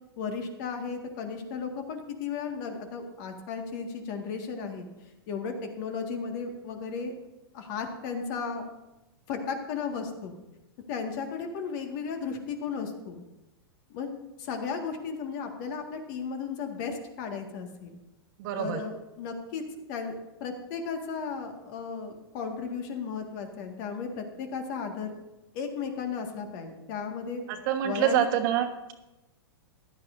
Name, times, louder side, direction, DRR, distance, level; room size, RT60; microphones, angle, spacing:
voice 1, 0.2-7.1 7.5-8.7 9.3-10.4 10.9-13.2 13.9-14.1 14.4-17.9 18.6-19.6 19.9-20.2 20.4-25.1 25.5-27.4 27.8-28.3, left 5 dB, 50° left, 4 dB, 1.8 m, -35 dB
voice 2, 18.4-18.8 27.7-28.9, right 11 dB, 50° right, 5 dB, 1.4 m, -26 dB
15.0 x 11.0 x 2.6 m, 0.98 s
hypercardioid pair, 125°, 13 cm